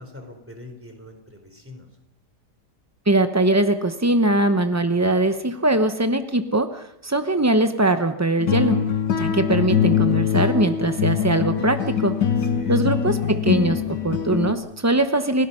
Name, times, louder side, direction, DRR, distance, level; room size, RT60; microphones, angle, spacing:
voice 1, 0.0-1.9 12.4-12.9, left 1 dB, 5° right, 4 dB, 3.6 m, -42 dB
voice 2, 3.1-8.8 9.2-12.2 12.7-15.5, right 2 dB, 25° right, 8 dB, 0.3 m, -21 dB
sound 1, 8.4-14.5, left 8 dB, 90° left, 2.1 m, -22 dB
30.0 x 17.0 x 5.6 m, 0.82 s
omnidirectional pair, 1.8 m